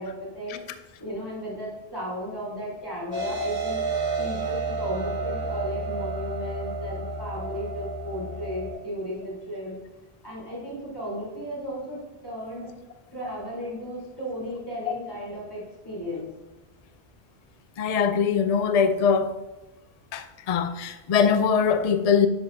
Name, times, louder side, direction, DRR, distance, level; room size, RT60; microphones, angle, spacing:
voice 1, 0.0-3.8 4.2-9.8 10.2-12.7 13.1-16.3, equal, 20° left, 3.7 m, -35 dB
sound 1, 3.1-8.7, right 3 dB, 60° right, 2.3 m, -30 dB
voice 2, 17.8-19.3 20.1-22.3, left 6 dB, 45° left, 0.5 m, -22 dB
11.5 x 8.4 x 2.7 m
omnidirectional pair, 1.1 m